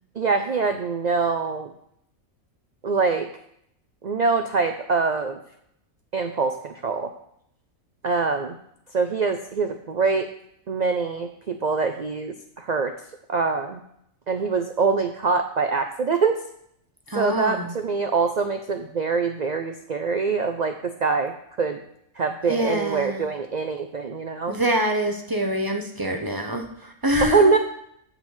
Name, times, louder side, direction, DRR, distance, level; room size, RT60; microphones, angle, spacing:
voice 1, 0.2-1.7 2.8-3.3 4.0-5.4 6.1-7.1 8.0-8.6 8.9-10.3 10.7-12.9 13.3-13.8 14.3-16.4 17.1-21.8 22.2-24.6 27.3-27.6, right 4 dB, 55° right, 6 dB, 0.4 m, -24 dB
voice 2, 17.1-17.7 22.5-23.3 24.5-27.5, equal, 20° right, 3 dB, 0.7 m, -25 dB
8.9 x 4.1 x 7.2 m, 0.72 s
omnidirectional pair, 1.5 m